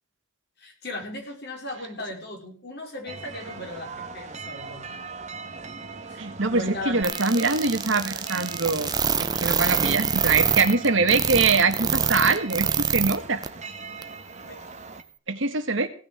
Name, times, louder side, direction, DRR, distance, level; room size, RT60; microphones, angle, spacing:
voice 1, 0.6-4.9 6.1-7.7 14.4-14.6, left 1 dB, 55° left, 1 dB, 5.2 m, -37 dB
sound 1, 3.1-15.0, right 4 dB, 35° right, 1.6 m, -39 dB
voice 2, 6.2-8.9 9.2-13.4 15.3-15.9, right 4 dB, 65° right, 8 dB, 1.7 m, -23 dB
sound 2, 7.0-13.2 13.4-13.5 14.0-14.1, right 6 dB, 20° right, 0.8 m, -25 dB
17.5 x 6.6 x 7.7 m, 0.40 s
head